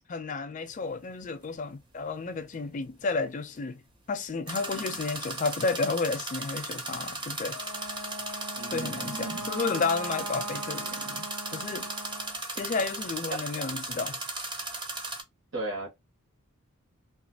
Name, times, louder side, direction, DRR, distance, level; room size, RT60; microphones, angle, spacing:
voice 1, 0.1-3.8 4.1-7.6 8.7-11.3 11.5-11.9 12.5-14.2, left 4 dB, 35° left, 0.4 m, -32 dB
sound 1, 0.7-0.8 4.5-15.2, right 2 dB, 20° right, 0.5 m, -36 dB
Wind instrument woodwind instrument, 7.4-12.4, right 1 dB, 90° right, 0.6 m, -40 dB
voice 2, 8.6-9.4 13.3-13.4 15.5-15.9, right 2 dB, 60° right, 1.5 m, -35 dB
3.0 x 2.3 x 2.6 m
head